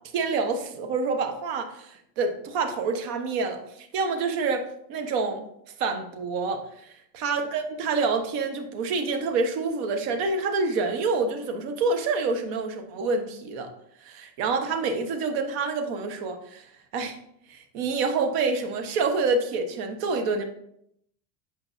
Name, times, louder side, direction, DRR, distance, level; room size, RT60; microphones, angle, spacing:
voice 1, 0.1-4.6 4.9-5.4 5.8-6.6 7.1-13.7 14.0-16.6 16.9-17.2 17.5-20.4, right 4 dB, 65° right, 5 dB, 1.3 m, -27 dB
8.4 x 5.2 x 2.7 m, 0.73 s
cardioid pair, 155°, 48 cm